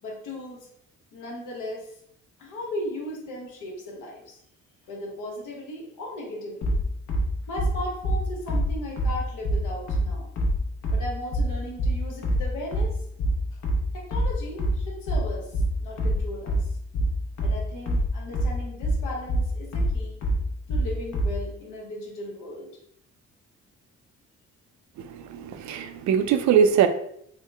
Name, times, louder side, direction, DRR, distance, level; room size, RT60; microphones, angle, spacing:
voice 1, 0.0-0.6 1.1-1.9 2.4-4.4 4.9-6.8 7.4-10.3 10.9-13.0 13.5-13.6 13.9-16.7 17.4-20.2 20.7-22.7, left 1 dB, 85° left, -1 dB, 1.2 m, -36 dB
sound 1, 6.6-21.4, right 1 dB, 65° left, 0.9 m, -25 dB
voice 2, 25.0-26.9, right 8 dB, 70° right, 8 dB, 0.5 m, -22 dB
3.7 x 2.1 x 3.3 m, 0.71 s
cardioid pair, 90°, 30 cm